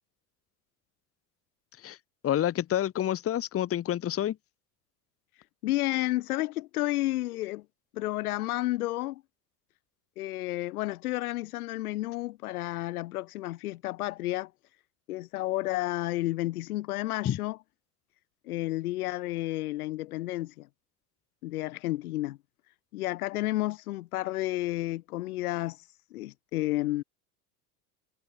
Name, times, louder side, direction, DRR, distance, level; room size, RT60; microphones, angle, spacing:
voice 1, 2.2-4.4 17.2-17.4, left 11 dB, 30° left, 1.4 m, -28 dB
voice 2, 5.6-7.6 7.9-9.2 10.2-14.5 15.1-17.6 18.4-20.7 21.4-22.4 22.9-25.8 26.1-27.0, left 17 dB, 70° left, 1.6 m, -31 dB
hypercardioid pair, 85°, 46 cm